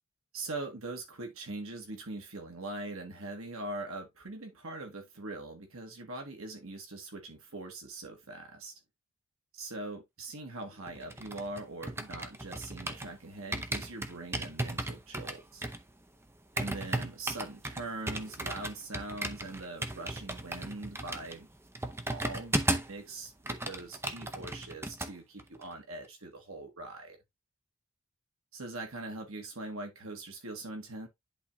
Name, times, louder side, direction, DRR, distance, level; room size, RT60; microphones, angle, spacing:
voice 1, 0.3-8.7 9.5-15.7 16.5-21.5 22.1-27.2 28.5-31.1, right 2 dB, 70° right, 1.7 m, -42 dB
sound 1, 10.9-13.2 13.5-23.0 23.3-25.1 25.4-25.7, right 1 dB, 10° right, 0.8 m, -36 dB
11.0 x 3.7 x 2.8 m
head